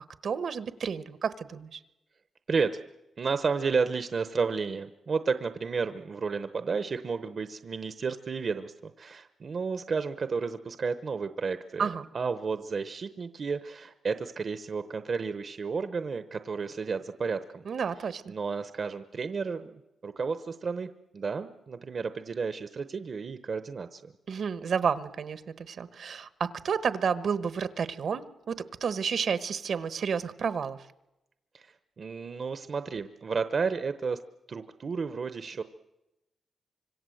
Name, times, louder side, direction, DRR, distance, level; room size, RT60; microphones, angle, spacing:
voice 1, 0.2-1.8 11.8-12.1 17.6-18.3 24.3-30.9, right 6 dB, 65° right, 13 dB, 1.1 m, -31 dB
voice 2, 2.5-2.8 3.2-11.9 12.1-17.6 18.3-24.1 31.5-34.2 34.5-35.6, right 5 dB, 50° right, 11 dB, 0.8 m, -32 dB
25.5 x 25.0 x 7.8 m, 0.97 s
wide cardioid pair, 120°, 0 cm